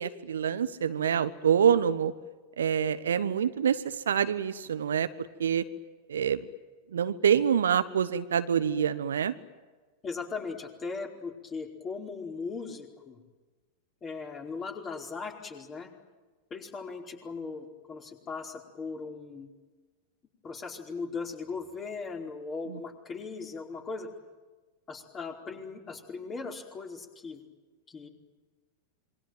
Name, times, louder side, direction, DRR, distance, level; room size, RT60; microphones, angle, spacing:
voice 1, 0.0-2.1 2.6-5.1 5.4-5.6 6.1-6.4 6.9-9.3 22.7-22.8, right 8 dB, 65° right, 12 dB, 1.1 m, -26 dB
voice 2, 10.0-13.2 14.0-15.9 16.5-19.5 20.4-24.1 24.9-27.4 27.9-28.1, left 4 dB, 25° left, 2 dB, 4.8 m, -38 dB
27.5 x 23.5 x 9.2 m, 1.3 s
figure-of-eight pair, 90°, 0 cm